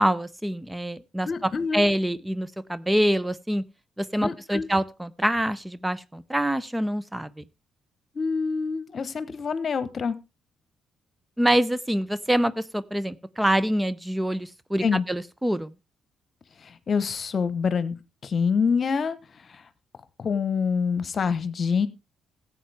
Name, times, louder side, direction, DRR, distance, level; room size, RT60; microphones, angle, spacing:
voice 1, 0.0-3.6 4.0-7.4 11.4-15.7, equal, 10° right, 17 dB, 0.7 m, -25 dB
voice 2, 1.2-1.8 4.2-4.7 8.1-10.2 14.8-15.0 16.6-19.7 20.2-21.9, left 5 dB, 50° left, 15 dB, 1.1 m, -26 dB
15.5 x 8.6 x 3.5 m, 0.28 s
hypercardioid pair, 45°, 0 cm